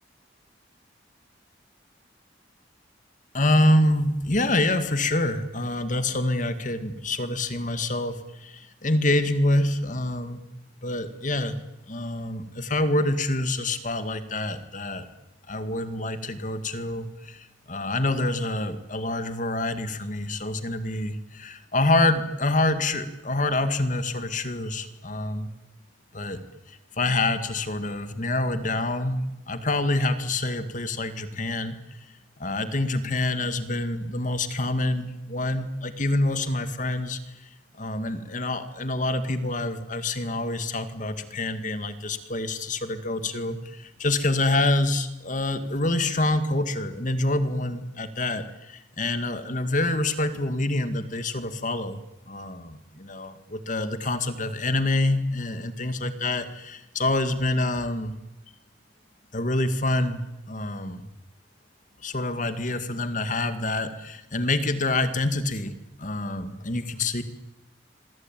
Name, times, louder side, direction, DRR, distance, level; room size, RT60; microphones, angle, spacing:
voice 1, 3.3-10.4 10.8-11.6 11.9-15.1 15.5-25.5 26.1-26.4 26.7-32.0 32.4-37.5 37.8-52.0 52.3-58.1 59.3-61.0 62.0-67.2, left 2 dB, 40° left, 10 dB, 2.2 m, -26 dB
27.5 x 23.0 x 9.3 m, 0.93 s
head